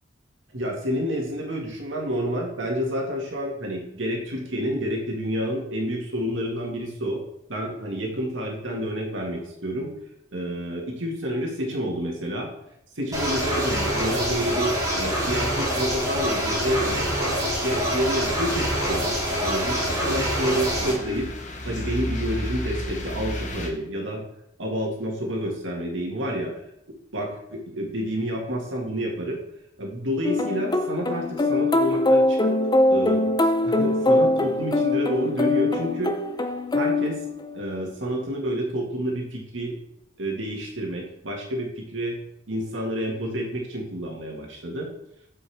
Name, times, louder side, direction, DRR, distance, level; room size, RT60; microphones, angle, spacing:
voice 1, 0.5-7.2 7.5-9.9 10.3-12.5 13.0-19.1 19.4-21.3 21.7-24.2 24.6-26.5 27.1-29.4 29.8-32.6 32.9-33.2 33.6-36.2 36.7-37.2 37.5-39.7 40.2-42.2 42.5-44.9, equal, 80° right, -1 dB, 1.9 m, -29 dB
sound 1, 13.1-20.9, equal, 20° right, 2.4 m, -25 dB
sound 2, 18.5-23.7, left 1 dB, 40° left, 1.0 m, -33 dB
sound 3, 30.2-37.7, left 2 dB, 20° left, 0.5 m, -22 dB
7.8 x 5.4 x 3.5 m, 0.78 s
head